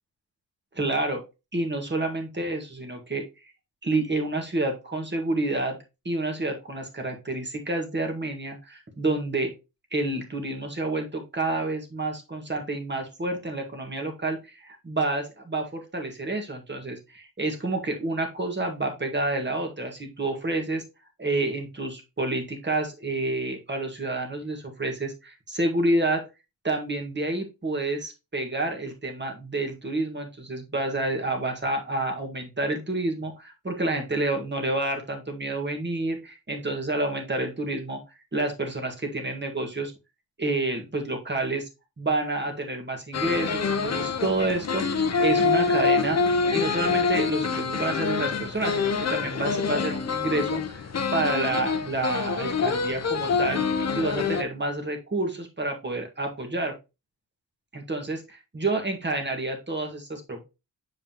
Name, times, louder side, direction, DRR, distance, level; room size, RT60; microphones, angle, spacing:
voice 1, 0.7-1.2 1.5-3.3 3.8-5.8 6.1-9.5 9.9-20.8 21.2-26.2 26.6-38.0 38.3-39.9 40.4-41.7 42.0-46.2 46.5-50.9 51.1-56.7 57.7-60.5, right 2 dB, 25° right, 4 dB, 1.7 m, -29 dB
sound 1, 43.1-54.4, left 5 dB, 35° left, 0.8 m, -26 dB
7.3 x 4.8 x 2.9 m, 0.26 s
cardioid pair, 100°, 46 cm